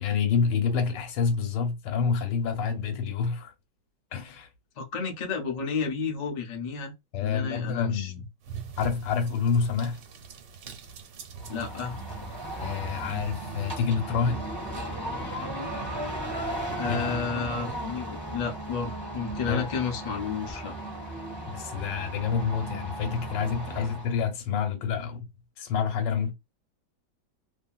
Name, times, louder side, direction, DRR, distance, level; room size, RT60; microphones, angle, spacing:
voice 1, 0.0-3.5 4.1-4.5 7.1-8.3 8.8-10.0 12.6-14.5 16.9-17.2 19.5-19.7 21.5-25.3 25.6-26.3, left 6 dB, 90° left, 1.4 m, -28 dB
voice 2, 4.8-6.9 7.2-8.1 11.5-12.0 16.7-20.7 23.6-23.8, left 6 dB, 65° left, 0.4 m, -32 dB
sound 1, 8.4-13.9, right 6 dB, 85° right, 1.4 m, -43 dB
sound 2, 11.4-24.2, right 1 dB, 20° right, 1.0 m, -36 dB
2.7 x 2.6 x 2.3 m
omnidirectional pair, 1.9 m